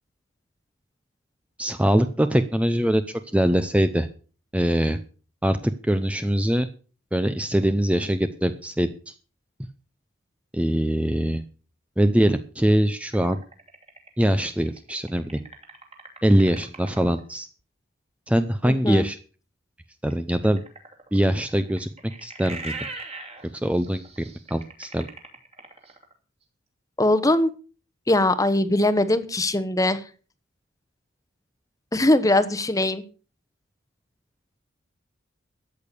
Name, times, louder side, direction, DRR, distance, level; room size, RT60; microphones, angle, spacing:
voice 1, 1.6-4.1 4.5-5.0 5.4-6.7 7.1-9.1 10.5-11.4 12.0-13.4 14.2-15.4 16.2-17.5 18.3-19.2 20.0-20.6 21.1-21.9 22.2-22.7 23.6-24.0 24.5-25.1, equal, 5° right, 10 dB, 0.6 m, -22 dB
sound 1, 13.1-17.2 20.1-26.1, right 3 dB, 30° right, 2.8 m, -41 dB
voice 2, 18.6-19.1 27.0-27.5 28.1-30.0 31.9-33.0, left 1 dB, 15° left, 11 dB, 1.0 m, -21 dB
13.5 x 8.9 x 6.8 m, 0.38 s
head